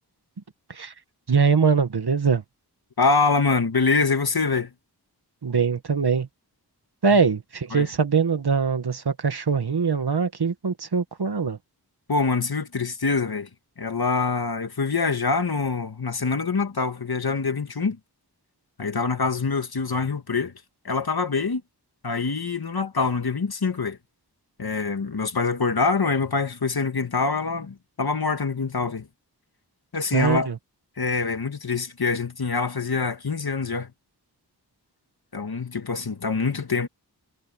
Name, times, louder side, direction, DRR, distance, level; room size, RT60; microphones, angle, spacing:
voice 1, 1.3-2.4 5.4-6.3 7.0-11.6 30.1-30.6, right 5 dB, 70° right, 1.9 m, -22 dB
voice 2, 3.0-4.7 7.7-7.9 12.1-13.5 13.8-18.0 18.8-20.5 20.8-21.6 22.0-24.0 24.6-29.1 29.9-30.5 31.0-33.9 35.3-36.9, left 4 dB, 65° left, 2.2 m, -25 dB
wide cardioid pair, 60°, 40 cm